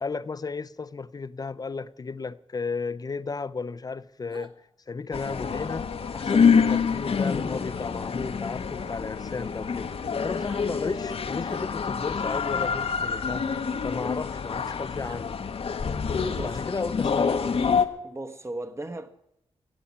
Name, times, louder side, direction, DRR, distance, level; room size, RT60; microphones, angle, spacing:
voice 1, 0.0-4.5 4.9-5.9 6.1-9.9 10.2-13.5 13.8-15.4 16.4-17.4, left 4 dB, 35° left, 0.6 m, -34 dB
sound 1, 4.3-4.5 6.6-6.8 8.8-9.0 10.3-10.7 11.4-11.7 13.7-13.9 15.0-15.2, right 3 dB, 45° right, 1.4 m, -48 dB
sound 2, 5.1-17.9, left 6 dB, 60° left, 1.0 m, -27 dB
voice 2, 16.3-16.9 18.0-19.1, right 2 dB, 25° right, 1.2 m, -37 dB
15.5 x 7.2 x 9.5 m
cardioid pair, 85°, 11 cm